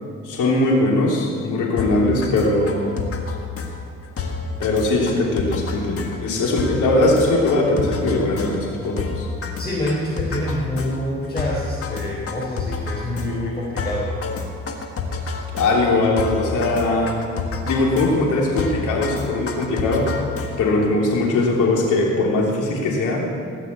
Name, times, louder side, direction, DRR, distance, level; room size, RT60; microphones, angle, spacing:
voice 1, 0.2-3.0 4.6-9.3 15.5-17.3 17.7-20.1 20.6-23.3, left 2 dB, 80° left, -2 dB, 3.2 m, -20 dB
sound 1, 1.8-20.9, left 4 dB, 50° left, 1.7 m, -29 dB
voice 2, 9.6-14.1 20.6-20.8, left 1 dB, 15° left, -6 dB, 3.9 m, -27 dB
18.0 x 6.2 x 8.4 m, 2.4 s
cardioid pair, 90°, 30 cm